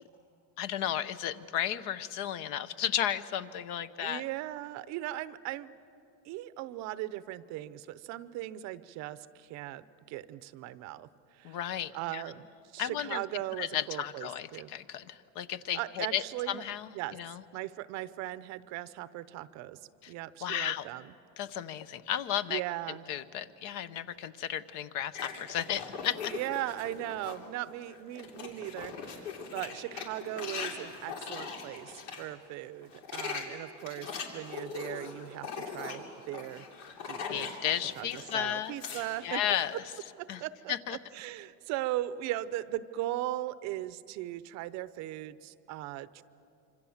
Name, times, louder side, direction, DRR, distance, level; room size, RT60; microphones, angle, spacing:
voice 1, 0.6-4.2 11.4-12.2 12.8-13.2 13.6-17.4 20.4-20.9 21.4-22.6 23.1-26.3 37.3-38.7 39.2-39.8 40.3-40.4 40.7-41.0, left 10 dB, 55° left, 14 dB, 0.9 m, -34 dB
voice 2, 4.0-5.8 6.2-11.6 11.9-14.7 15.7-16.6 16.9-19.8 20.1-21.1 22.5-23.1 26.3-36.7 37.1-37.6 38.0-39.4 40.2-46.2, right 15 dB, 50° right, 16 dB, 0.7 m, -38 dB
sound 1, 25.1-27.5 27.9-32.2 32.8-38.3 38.6-39.7, left 5 dB, 80° left, 3.5 m, -41 dB
26.5 x 25.5 x 7.2 m, 2.7 s
cardioid pair, 165°, 36 cm